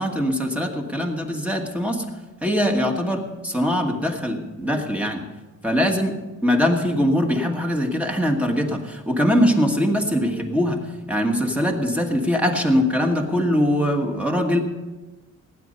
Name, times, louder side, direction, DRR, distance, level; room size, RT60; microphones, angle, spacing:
voice 1, 0.0-2.0 2.4-5.2 5.6-10.8 11.1-14.6, equal, 5° right, 2 dB, 1.5 m, -22 dB
18.5 x 9.3 x 5.5 m, 1.2 s
wide cardioid pair, 155°, 30 cm